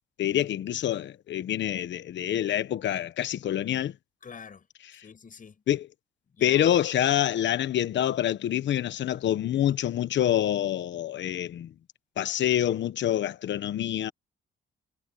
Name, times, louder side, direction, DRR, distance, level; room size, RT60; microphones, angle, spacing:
voice 1, 0.2-3.9 5.7-5.8 6.4-11.7 12.2-14.1, left 11 dB, 65° left, 1.2 m, -26 dB
voice 2, 4.2-5.6 6.3-6.8, left 6 dB, 40° left, 7.2 m, -47 dB
cardioid pair, 90°, 20 cm